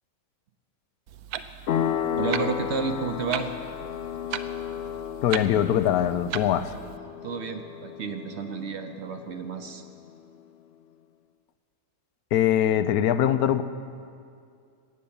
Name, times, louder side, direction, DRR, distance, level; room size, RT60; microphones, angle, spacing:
Clock, 1.1-7.0, right 9 dB, 80° right, 1.1 m, -38 dB
sound 1, 1.7-10.0, left 9 dB, 65° left, 0.6 m, -33 dB
voice 1, 2.2-3.5 7.2-9.8, right 5 dB, 55° right, 7 dB, 0.9 m, -31 dB
voice 2, 5.2-6.7 12.3-13.6, left 10 dB, 80° left, 12 dB, 1.1 m, -22 dB
18.0 x 6.8 x 8.6 m, 2.3 s
omnidirectional pair, 1.6 m